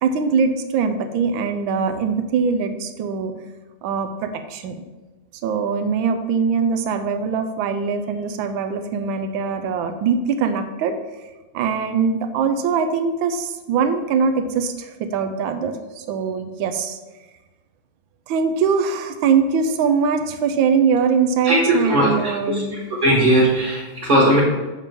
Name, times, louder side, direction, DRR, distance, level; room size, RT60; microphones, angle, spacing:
voice 1, 0.0-3.3 3.8-4.8 5.4-11.0 11.5-17.0 18.3-22.8, right 6 dB, 70° right, 8 dB, 1.4 m, -22 dB
voice 2, 21.4-22.6 23.0-24.4, right 1 dB, 25° right, -5 dB, 1.4 m, -18 dB
7.3 x 6.8 x 3.6 m, 1.2 s
omnidirectional pair, 2.4 m